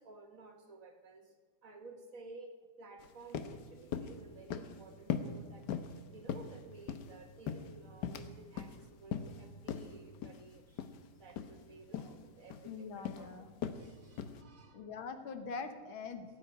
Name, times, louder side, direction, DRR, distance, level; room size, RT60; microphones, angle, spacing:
voice 1, 0.0-1.3 1.6-10.9 11.2-14.9, right 3 dB, 45° right, 5 dB, 1.6 m, -54 dB
sound 1, 3.0-3.1 3.3-3.6 3.9-4.2 4.5-4.8 5.1-5.4 5.7-6.0 6.3-7.1 7.5-8.3 8.6-8.8 9.1-9.4 9.7-9.9 10.2-10.4 10.8-11.0 11.3-11.5 11.9-12.1 12.5-12.7 13.0-13.3 13.6-13.8 14.2-14.4, left 8 dB, 65° left, 1.4 m, -39 dB
voice 2, 12.6-13.6 14.7-16.4, left 5 dB, 85° left, 8 dB, 2.1 m, -43 dB
16.5 x 8.4 x 9.7 m, 1.5 s
omnidirectional pair, 2.2 m